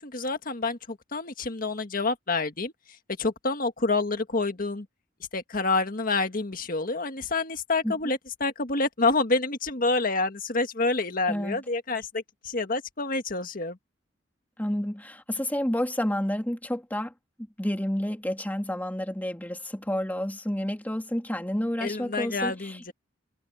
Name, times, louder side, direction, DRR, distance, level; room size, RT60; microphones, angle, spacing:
voice 1, 0.0-2.7 3.2-4.9 5.3-13.8 21.8-22.9, left 3 dB, 50° left, 1.7 m, -28 dB
voice 2, 11.3-11.6 14.6-17.1 17.6-22.9, equal, 10° left, 2.3 m, -30 dB
head